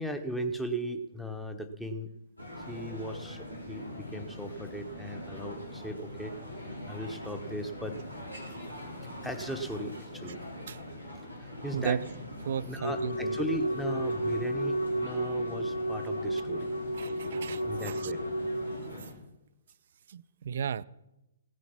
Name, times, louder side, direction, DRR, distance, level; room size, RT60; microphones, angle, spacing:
voice 1, 0.0-2.1 2.5-6.4 6.8-8.0 9.0-10.4 11.4-12.0 12.6-16.7 17.7-18.2, equal, 5° left, 1.1 m, -37 dB
sound 1, 2.4-19.1, left 1 dB, 90° left, 4.4 m, -42 dB
voice 2, 12.5-13.4 16.9-18.1 20.1-20.8, right 8 dB, 50° right, 0.5 m, -34 dB
Wind instrument woodwind instrument, 12.8-18.9, right 1 dB, 70° left, 0.7 m, -32 dB
16.5 x 9.6 x 5.9 m
figure-of-eight pair, 125°, 0 cm